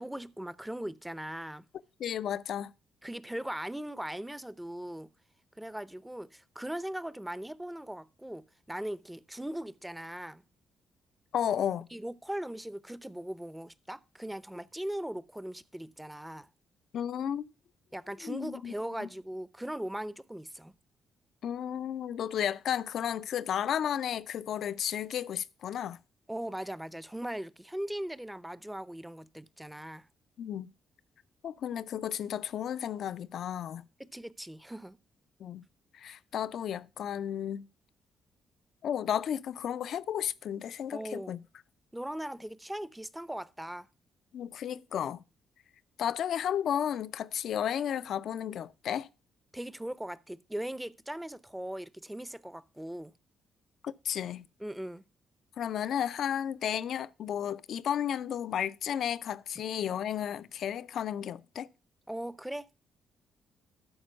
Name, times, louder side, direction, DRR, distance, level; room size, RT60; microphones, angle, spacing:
voice 1, 0.0-1.6 3.0-5.1 5.6-10.4 11.9-16.5 17.9-20.7 26.3-30.1 34.0-35.0 40.9-41.4 41.9-43.9 49.5-53.1 54.6-55.0 62.1-62.7, right 1 dB, 5° right, 0.6 m, -39 dB
voice 2, 2.0-2.7 11.3-11.9 16.9-17.5 18.2-18.7 19.0-19.1 21.4-26.0 30.4-30.7 31.4-33.8 35.4-35.6 35.9-37.7 38.8-41.4 44.3-45.2 46.0-49.1 53.8-54.5 55.6-61.7, left 9 dB, 70° left, 0.4 m, -33 dB
12.5 x 4.4 x 5.5 m
supercardioid pair, 55°, 0 cm